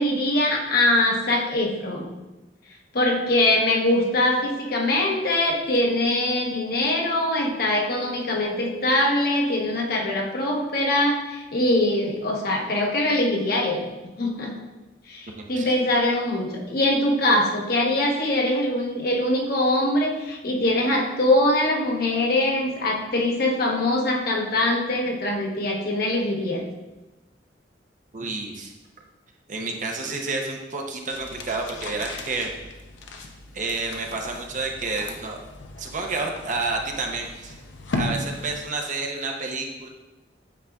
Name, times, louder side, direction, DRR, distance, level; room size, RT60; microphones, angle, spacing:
voice 1, 0.0-2.1 2.9-13.8 14.2-14.6 15.1-26.6, left 1 dB, 55° left, 0 dB, 1.0 m, -23 dB
voice 2, 15.3-15.8 28.1-28.7 29.5-32.5 33.5-35.4 35.8-37.6 37.9-39.9, right 3 dB, 45° right, 2 dB, 0.7 m, -30 dB
sound 1, 31.1-38.8, left 2 dB, 75° left, 0.6 m, -36 dB
8.2 x 4.8 x 2.3 m, 1.1 s
head